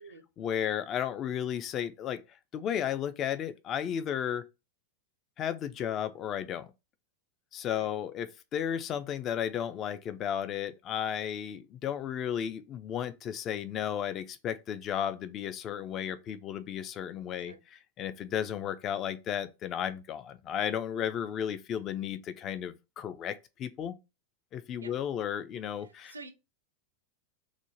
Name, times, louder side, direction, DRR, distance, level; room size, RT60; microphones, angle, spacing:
voice 1, 0.4-2.2 2.5-4.4 5.4-6.7 7.5-17.5 18.0-24.0 24.5-26.1, left 9 dB, 30° left, 0.3 m, -34 dB
voice 2, 25.8-26.3, right 3 dB, 75° right, 0.4 m, -48 dB
2.5 x 2.1 x 3.0 m
figure-of-eight pair, 90°, 0 cm